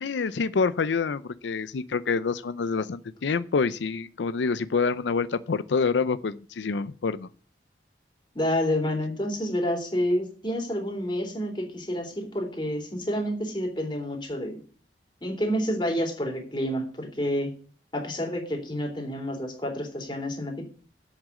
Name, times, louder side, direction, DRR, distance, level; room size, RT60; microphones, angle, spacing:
voice 1, 0.0-7.3, left 5 dB, 90° left, 15 dB, 0.5 m, -27 dB
voice 2, 8.3-14.6 15.2-17.5 17.9-20.6, equal, 25° left, 2 dB, 3.4 m, -29 dB
8.1 x 7.4 x 8.4 m, 0.43 s
head